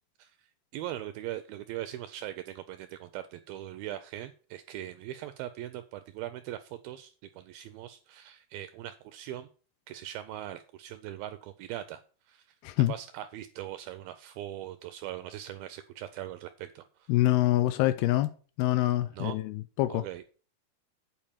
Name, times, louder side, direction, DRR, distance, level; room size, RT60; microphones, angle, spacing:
voice 1, 0.7-9.5 9.9-12.5 12.9-17.2 19.1-19.4 19.9-20.2, right 13 dB, 85° right, 2.1 m, -40 dB
voice 2, 12.6-12.9 17.1-18.3 18.6-20.0, left 15 dB, 80° left, 2.3 m, -25 dB
8.9 x 4.6 x 7.2 m
omnidirectional pair, 4.7 m